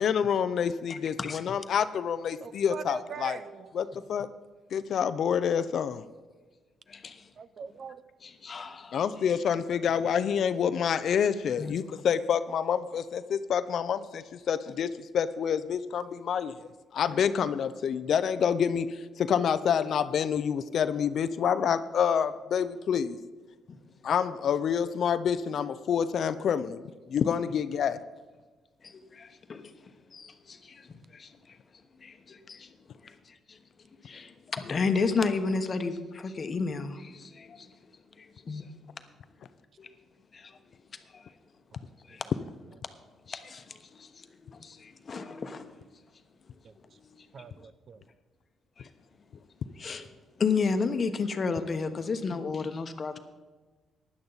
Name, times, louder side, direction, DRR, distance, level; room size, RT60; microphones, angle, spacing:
voice 1, 0.0-3.4 3.7-4.3 4.7-6.0 8.9-16.6 16.9-23.2 24.0-26.8 27.1-28.0, left 7 dB, 65° left, 0.6 m, -27 dB
voice 2, 0.9-1.4 6.9-7.2 8.2-9.0 11.6-11.7 29.1-29.6 30.1-30.8 31.1-31.3 32.0-32.7 34.1-37.7 38.5-38.6 39.8-39.9 40.3-40.4 42.1-42.2 43.3-43.6 44.0-44.1 44.5-45.6 49.8-50.0 50.4-53.2, left 4 dB, 40° left, 1.1 m, -31 dB
voice 3, 2.4-3.7 7.4-8.0 46.6-46.7 47.3-48.0, right 6 dB, 50° right, 0.6 m, -41 dB
16.0 x 11.0 x 4.0 m
cardioid pair, 90°, 0 cm